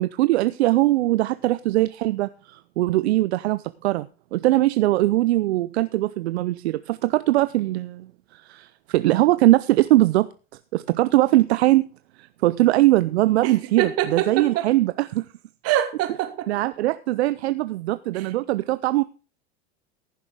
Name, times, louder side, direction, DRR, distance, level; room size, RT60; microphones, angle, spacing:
voice 1, 0.0-10.3 10.7-11.9 12.2-15.3 16.5-19.0, right 17 dB, 75° right, 14 dB, 0.6 m, -21 dB
voice 2, 13.4-14.7 15.6-16.5 18.1-18.3, right 12 dB, 45° right, 7 dB, 2.5 m, -25 dB
15.0 x 7.0 x 5.0 m, 0.34 s
hypercardioid pair, 100°, 33 cm